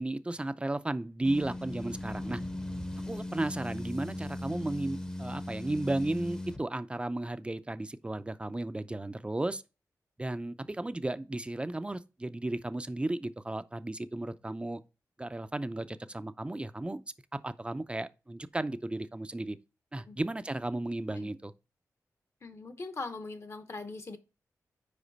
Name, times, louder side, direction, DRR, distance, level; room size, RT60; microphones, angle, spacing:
voice 1, 0.0-2.4 3.1-9.6 10.2-14.8 15.2-17.0 17.3-19.6 19.9-21.5, right 2 dB, 15° right, 0.4 m, -34 dB
sound 1, 1.2-6.6, left 1 dB, 15° left, 0.7 m, -38 dB
voice 2, 22.4-24.2, left 3 dB, 45° left, 0.9 m, -41 dB
5.1 x 4.9 x 4.0 m
cardioid pair, 65°, 6 cm